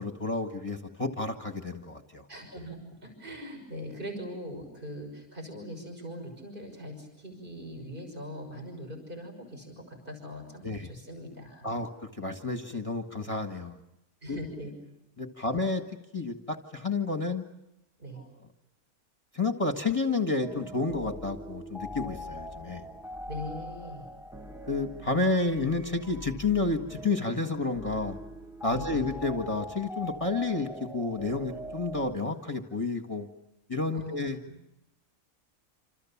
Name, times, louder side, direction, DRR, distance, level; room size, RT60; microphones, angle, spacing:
voice 1, 0.0-2.2 10.6-10.9 11.6-13.8 14.3-14.4 15.2-15.8 16.1-17.4 19.3-22.8 24.7-28.2 28.6-33.3 33.7-34.4, left 3 dB, 25° left, 4 dB, 1.6 m, -30 dB
voice 2, 2.3-11.8 14.2-14.7 15.3-15.5 18.0-18.2 23.2-24.1 28.7-29.0 33.9-34.2 34.4-34.5, equal, 35° right, 2 dB, 6.2 m, -41 dB
sound 1, 20.4-32.2, equal, ahead, 1.1 m, -42 dB
28.0 x 27.0 x 7.3 m, 0.88 s
omnidirectional pair, 1.6 m